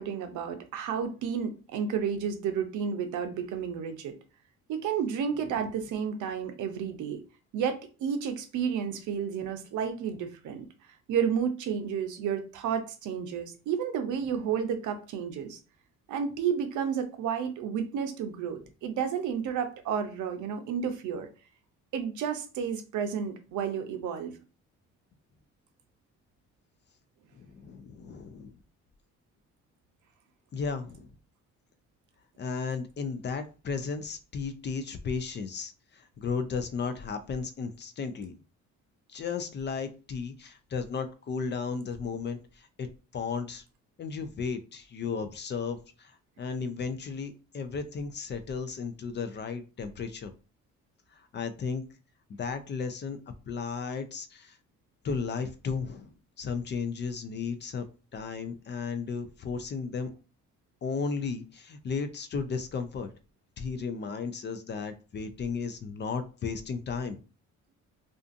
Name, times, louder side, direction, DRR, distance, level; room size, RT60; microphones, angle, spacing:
voice 1, 0.0-4.2 4.7-7.2 7.5-10.7 11.1-15.6 16.1-21.3 21.9-24.4, right 7 dB, 80° right, 7 dB, 0.6 m, -31 dB
voice 2, 27.4-28.5 30.5-31.1 32.4-38.4 39.1-42.9 43.1-43.6 44.0-50.3 51.1-51.8 52.4-53.2 53.5-54.6 55.0-57.8 58.1-60.1 60.8-63.1 63.6-67.2, left 5 dB, 35° left, 9 dB, 0.4 m, -34 dB
2.5 x 2.4 x 2.5 m, 0.33 s
cardioid pair, 90°, 30 cm